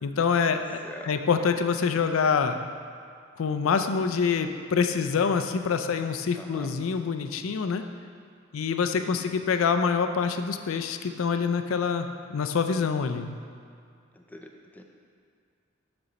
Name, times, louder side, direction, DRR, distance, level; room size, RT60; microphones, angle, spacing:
voice 1, 0.0-2.7 3.4-7.8 8.5-13.4, left 5 dB, 80° left, 8 dB, 0.4 m, -26 dB
voice 2, 6.4-6.7 9.0-9.4 14.1-14.8, equal, 10° left, 2 dB, 0.4 m, -45 dB
6.5 x 6.1 x 4.0 m, 2.2 s
head